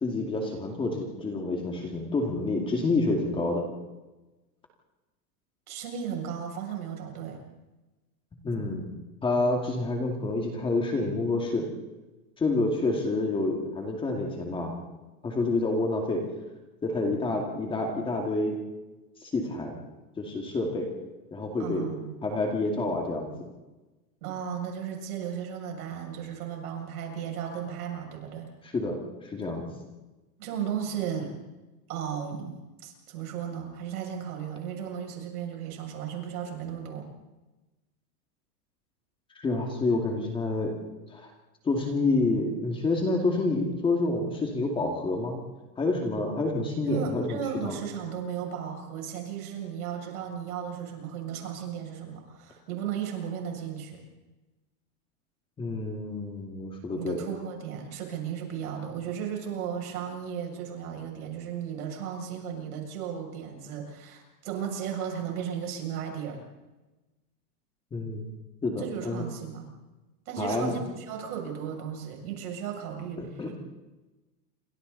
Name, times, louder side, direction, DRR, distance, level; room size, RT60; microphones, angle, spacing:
voice 1, 0.0-3.6 8.4-8.9 9.2-11.7 12.4-14.8 15.2-16.2 16.8-18.6 19.2-19.8 20.2-20.9 21.3-21.9 22.2-23.3 28.6-29.0 29.2-29.7 39.4-40.7 41.1-41.3 41.6-45.4 45.8-47.8 55.6-57.2 67.9-68.2 68.6-69.2 70.4-70.7 73.2-73.5, left 2 dB, 10° left, 2 dB, 2.4 m, -28 dB
voice 2, 5.7-7.4 21.6-22.2 24.2-28.5 30.4-31.3 31.9-37.1 46.8-54.0 57.0-66.4 68.8-69.7 70.3-73.6, right 8 dB, 65° right, 1 dB, 7.4 m, -35 dB
28.5 x 25.5 x 4.2 m, 1.1 s
supercardioid pair, 170°, 48 cm